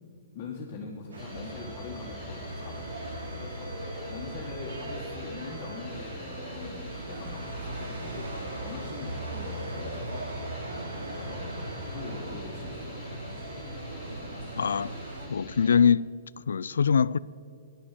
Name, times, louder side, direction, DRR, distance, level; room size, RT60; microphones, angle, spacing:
voice 1, 0.3-3.7 4.1-8.3 8.6-10.3 10.9-13.1, left 4 dB, 25° left, 1.7 m, -43 dB
sound 1, 1.1-15.3, right 1 dB, 85° right, 3.1 m, -38 dB
sound 2, 1.2-15.8, left 3 dB, 5° left, 2.9 m, -48 dB
voice 2, 14.6-15.0 15.3-16.1 16.5-17.2, left 7 dB, 85° left, 0.3 m, -23 dB
14.5 x 10.5 x 7.5 m
hypercardioid pair, 165°, 0 cm